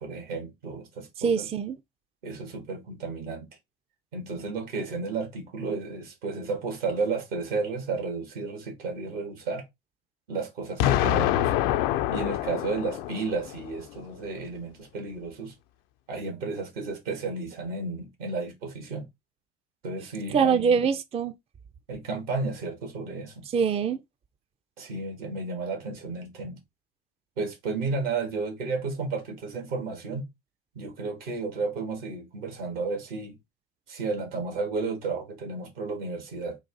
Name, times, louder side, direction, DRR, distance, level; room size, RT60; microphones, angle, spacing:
voice 1, 0.0-1.5 2.2-3.5 4.1-9.7 10.3-11.5 12.1-15.5 16.1-19.1 19.8-20.8 21.9-23.5 24.8-26.6 27.4-30.3 30.7-33.4 33.9-36.6, right 4 dB, 75° right, 1.7 m, -32 dB
voice 2, 1.2-1.8 20.3-21.3 23.5-24.0, right 6 dB, 20° right, 0.4 m, -24 dB
Explosion, 10.8-13.8, left 13 dB, 65° left, 0.5 m, -26 dB
3.9 x 2.5 x 3.9 m
hypercardioid pair, 65°, 29 cm